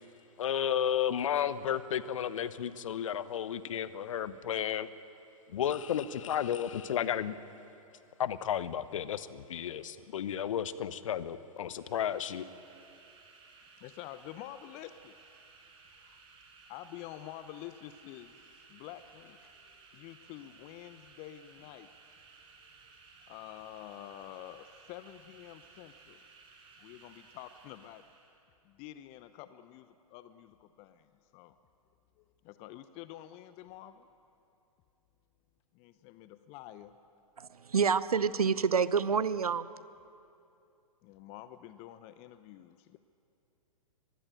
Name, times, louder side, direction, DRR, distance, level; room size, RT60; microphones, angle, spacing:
voice 1, 0.4-4.9 5.5-7.4 8.2-12.5, left 9 dB, 60° left, 15 dB, 1.1 m, -33 dB
sound 1, 11.5-28.4, right 4 dB, 25° right, 5.6 m, -58 dB
voice 2, 13.8-15.2 15.9-16.2 16.7-19.5 19.9-21.9 23.3-26.2 26.8-28.0 28.6-31.6 32.2-34.1 35.7-36.9 41.0-43.0, left 13 dB, 30° left, 13 dB, 0.8 m, -48 dB
voice 3, 37.4-39.7, right 6 dB, 75° right, 16 dB, 0.9 m, -28 dB
24.0 x 21.0 x 9.0 m, 2.7 s
figure-of-eight pair, 110°, 19 cm